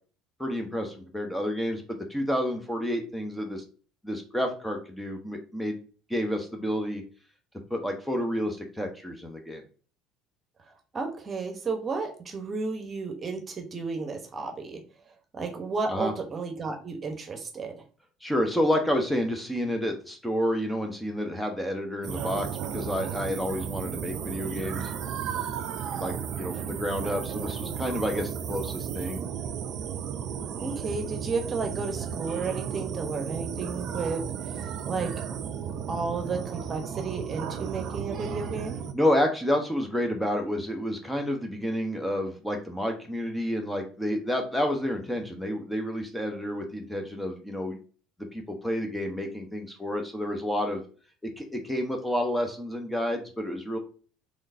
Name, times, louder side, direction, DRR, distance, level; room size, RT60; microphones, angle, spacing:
voice 1, 0.4-3.6 4.0-5.8 6.1-7.0 7.7-9.6 15.9-16.1 18.2-24.9 25.9-29.2 38.9-47.8 48.2-50.8 51.2-53.8, equal, 5° left, 3 dB, 0.9 m, -29 dB
voice 2, 10.9-14.8 15.3-17.8 30.6-34.2 34.9-35.1 35.9-38.8, right 4 dB, 35° right, 4 dB, 1.0 m, -32 dB
sound 1, 22.0-38.9, right 8 dB, 55° right, 0.4 m, -34 dB
3.7 x 3.2 x 2.6 m, 0.39 s
hypercardioid pair, 65°, 0 cm